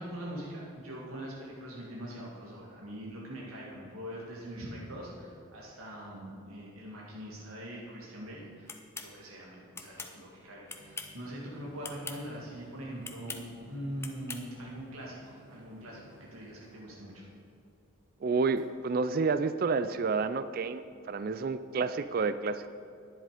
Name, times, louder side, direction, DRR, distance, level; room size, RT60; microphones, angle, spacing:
voice 1, 0.0-17.2, equal, 85° right, -4 dB, 2.0 m, -42 dB
sound 1, 8.7-9.1 9.8-10.1 10.7-11.2 11.8-12.2 13.0-13.4 14.0-14.4, left 4 dB, 10° left, 0.6 m, -41 dB
sound 2, 10.8-19.9, equal, 65° right, 1.8 m, -58 dB
voice 2, 18.2-22.7, right 4 dB, 45° right, 12 dB, 0.3 m, -30 dB
11.0 x 10.0 x 5.0 m, 2.5 s
head